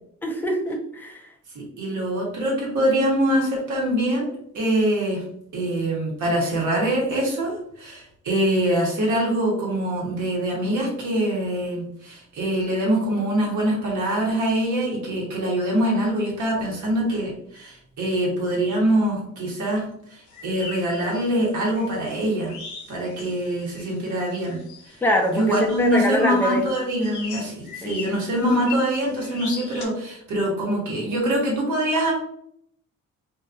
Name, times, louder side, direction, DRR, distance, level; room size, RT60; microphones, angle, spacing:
voice 1, 0.2-1.2 25.0-26.7 27.8-28.2, left 1 dB, 5° left, 1 dB, 0.5 m, -24 dB
voice 2, 1.5-4.3 4.5-5.2 5.5-19.8 20.1-22.5 22.9-24.6 24.9-25.0 25.3-32.1, right 1 dB, 75° right, -2 dB, 1.3 m, -24 dB
sound 1, 20.3-29.9, left 5 dB, 75° left, 0.9 m, -41 dB
2.8 x 2.5 x 2.5 m, 0.70 s
cardioid pair, 90°, 30 cm